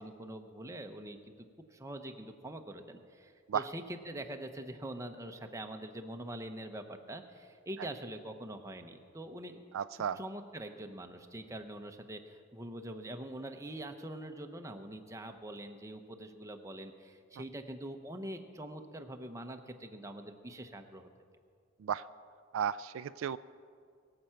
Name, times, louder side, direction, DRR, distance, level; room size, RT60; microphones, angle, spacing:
voice 1, 0.0-1.3 1.7-9.6 10.2-21.1, right 1 dB, 15° right, 5 dB, 0.8 m, -44 dB
voice 2, 9.7-10.2 21.8-22.1 22.5-23.4, right 8 dB, 75° right, 15 dB, 0.3 m, -34 dB
22.0 x 7.8 x 5.7 m, 2.2 s
head